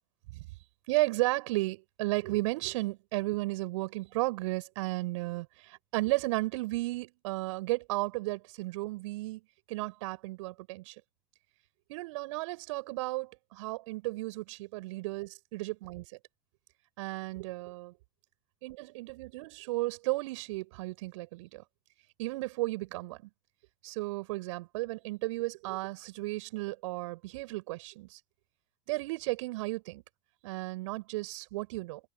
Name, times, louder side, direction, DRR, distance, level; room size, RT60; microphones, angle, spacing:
voice 1, 0.9-9.4 9.7-10.9 11.9-16.0 17.0-17.9 18.6-21.6 22.2-23.3 23.8-28.2 28.9-30.0 30.4-32.0, right 21 dB, 60° right, 6.6 m, -34 dB
open air
figure-of-eight pair, 75°, 18 cm